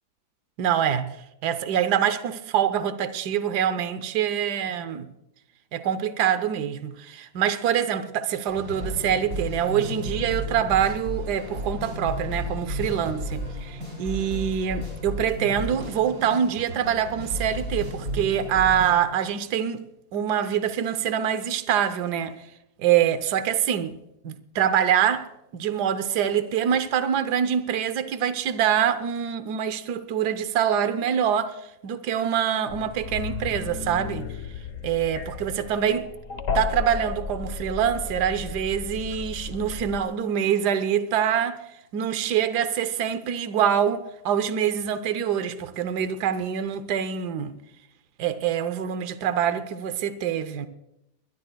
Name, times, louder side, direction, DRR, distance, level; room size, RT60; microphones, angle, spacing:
voice 1, 0.6-1.2 1.4-5.1 5.7-19.8 20.1-22.4 22.8-24.0 24.2-25.3 25.5-34.3 34.8-36.1 36.5-41.6 41.9-47.6 48.2-50.7, right 9 dB, 75° right, 1.4 m, -25 dB
sound 1, 8.5-19.0, equal, 60° right, 6.2 m, -33 dB
sound 2, 32.7-40.0, left 5 dB, 55° left, 1.4 m, -34 dB
21.5 x 21.5 x 2.3 m
omnidirectional pair, 1.8 m